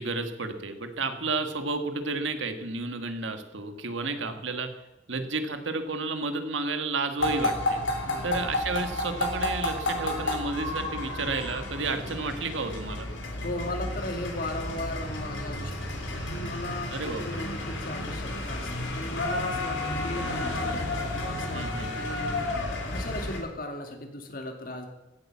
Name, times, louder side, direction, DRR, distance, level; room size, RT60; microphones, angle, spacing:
voice 1, 0.0-4.7 5.1-7.8 8.2-13.1 16.9-17.5 21.5-22.0, right 3 dB, 85° right, 8 dB, 1.7 m, -31 dB
voice 2, 1.0-1.3 4.0-4.4 8.0-8.4 13.4-18.7 18.9-22.5 22.9-24.9, left 1 dB, 50° left, 5 dB, 2.3 m, -37 dB
sound 1, 7.2-23.4, left 2 dB, 85° left, 3.6 m, -31 dB
16.0 x 8.9 x 7.2 m, 0.99 s
head